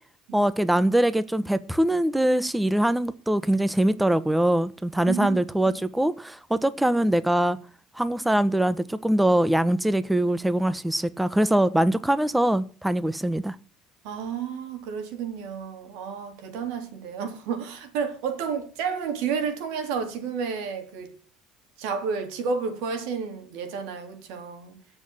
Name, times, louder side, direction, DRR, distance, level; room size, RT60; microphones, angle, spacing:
voice 1, 0.3-7.6 8.0-13.5, right 1 dB, 5° right, 1.0 m, -23 dB
voice 2, 5.1-5.4 5.7-5.8 14.0-21.1 21.8-24.8, right 6 dB, 85° right, 3.7 m, -31 dB
17.0 x 6.9 x 7.4 m
supercardioid pair, 90°, 0 cm